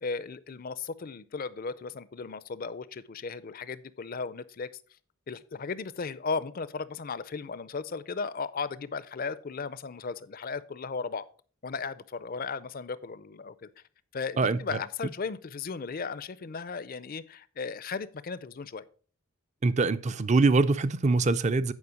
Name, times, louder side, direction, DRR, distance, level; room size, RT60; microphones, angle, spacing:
voice 1, 0.0-4.7 5.3-11.3 11.6-13.7 14.1-18.8, left 4 dB, 40° left, 0.5 m, -36 dB
voice 2, 14.4-14.8 19.6-21.7, right 3 dB, 30° right, 0.4 m, -24 dB
9.7 x 5.1 x 5.0 m
head